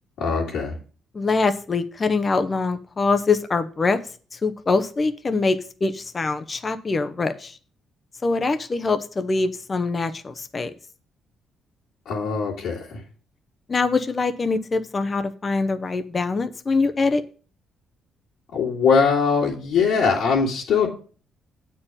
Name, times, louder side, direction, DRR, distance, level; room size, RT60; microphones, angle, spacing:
voice 1, 0.2-0.7 12.1-12.9 18.5-20.9, left 5 dB, 80° left, -5 dB, 2.3 m, -21 dB
voice 2, 1.1-4.0 4.3-7.6 8.2-10.7 13.7-17.2, left 3 dB, 30° left, 9 dB, 0.8 m, -23 dB
8.4 x 4.5 x 7.2 m, 0.39 s
cardioid pair, 90°, 0 cm